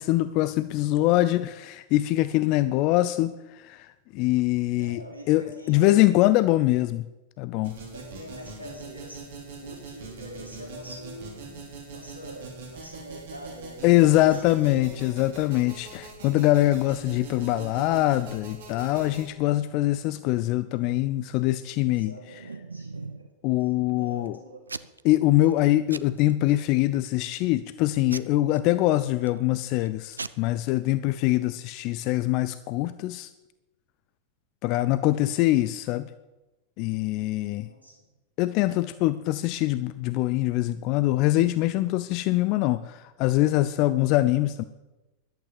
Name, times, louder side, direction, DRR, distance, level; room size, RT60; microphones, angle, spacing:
voice 1, 0.0-5.0 5.3-5.4 5.7-7.1 7.4-7.8 13.8-22.1 23.4-24.4 25.0-33.3 34.6-36.1 36.8-37.7 38.4-44.6, left 16 dB, 40° left, 14 dB, 0.6 m, -23 dB
voice 2, 4.7-6.2 7.9-14.6 19.0-19.2 21.8-23.3 23.6-24.7 36.8-37.2 37.6-38.0, equal, 90° left, 0 dB, 4.3 m, -45 dB
sound 1, 7.6-19.2, right 3 dB, 55° right, 4.3 m, -42 dB
Packing tape duct tape / Tearing, 21.9-23.3 23.8-24.3 24.7-25.1 25.4-25.6 25.9-26.6 27.1-27.4 28.1-29.4 29.9-30.0 30.1-30.3, right 4 dB, 80° right, 0.6 m, -39 dB
14.0 x 12.0 x 8.7 m, 1.1 s
figure-of-eight pair, 90°, 0 cm